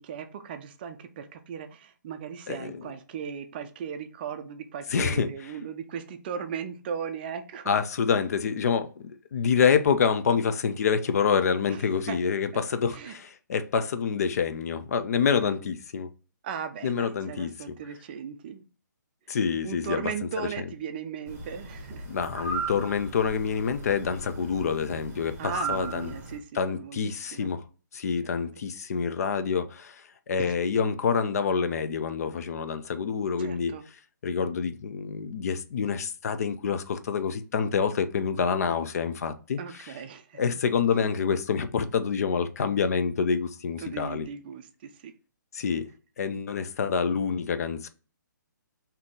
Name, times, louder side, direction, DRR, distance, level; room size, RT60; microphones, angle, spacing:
voice 1, 0.0-7.7 11.7-11.8 12.1-12.2 12.9-13.2 16.4-18.6 19.6-22.1 25.4-27.5 28.2-28.4 33.4-33.9 39.6-40.4 43.8-45.1, right 7 dB, 30° right, 0.4 m, -37 dB
voice 2, 4.9-5.3 7.7-16.1 16.8-17.7 19.3-20.1 20.4-20.5 22.1-26.1 26.5-27.6 27.9-33.7 34.2-39.9 40.4-44.3 45.5-45.8 46.2-47.9, left 6 dB, 50° left, 0.5 m, -27 dB
sound 1, 21.3-26.4, right 2 dB, 15° right, 1.2 m, -37 dB
3.7 x 2.8 x 3.6 m
hypercardioid pair, 150°, 10 cm